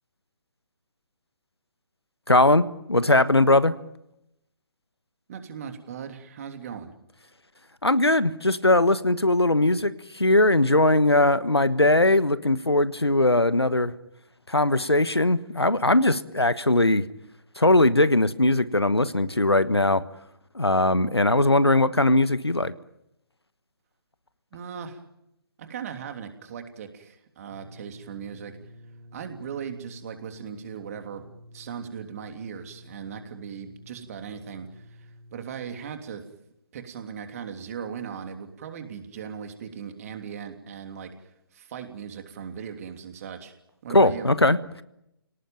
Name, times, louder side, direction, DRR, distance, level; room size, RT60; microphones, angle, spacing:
voice 1, 2.3-3.7 7.8-13.9 14.5-17.0 17.6-20.0 20.5-22.7 43.9-44.8, left 2 dB, 90° left, 15 dB, 1.4 m, -20 dB
voice 2, 5.3-6.9 24.5-25.0 25.6-28.6 29.1-31.2 31.5-36.2 36.7-43.5 43.8-44.3, right 7 dB, 35° right, 6 dB, 3.1 m, -38 dB
sound 1, 27.5-35.8, equal, 55° right, 2.0 m, -50 dB
29.5 x 18.5 x 9.1 m, 0.84 s
figure-of-eight pair, 140°, 13 cm